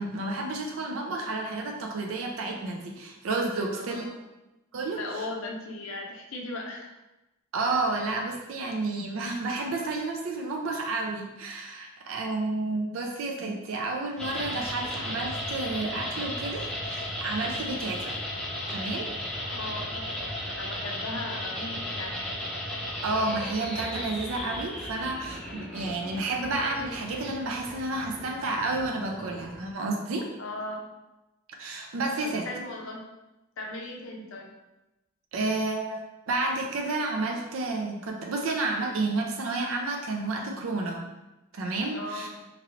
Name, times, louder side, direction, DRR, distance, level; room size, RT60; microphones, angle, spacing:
voice 1, 0.0-4.1 4.7-5.3 7.5-18.2 18.7-19.1 23.0-30.3 31.6-32.5 35.3-41.1 41.5-42.3, right 2 dB, 75° right, 1 dB, 0.4 m, -31 dB
voice 2, 3.7-4.1 5.0-6.9 19.4-22.2 30.4-30.9 32.2-33.0 33.6-34.5 41.9-42.5, left 2 dB, 65° left, 1 dB, 0.5 m, -38 dB
sound 1, 14.2-29.7, left 1 dB, 5° left, 0.5 m, -35 dB
3.0 x 2.5 x 2.9 m, 1.0 s
head